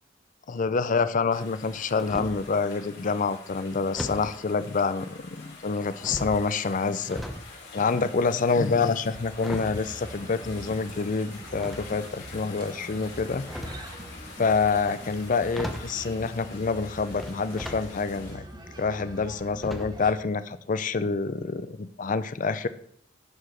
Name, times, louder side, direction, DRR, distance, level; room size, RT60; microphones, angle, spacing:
voice 1, 0.5-7.2 7.7-13.4 14.4-18.4 18.8-22.7, left 4 dB, 45° left, 13 dB, 0.5 m, -27 dB
sound 1, 1.3-18.3, left 3 dB, 65° left, 4.1 m, -46 dB
sound 2, 2.0-2.5 3.9-4.3 5.2-5.6 6.0-7.5 7.8-10.8 11.5-12.3 13.2-14.0 15.1-15.2 15.5-16.0 17.2-17.8 18.3-18.4 19.6-20.1 20.4-20.6 20.9-21.0, equal, ahead, 0.9 m, -38 dB
sound 3, 9.7-20.1, right 1 dB, 25° right, 1.2 m, -44 dB
11.5 x 4.9 x 5.9 m, 0.66 s
head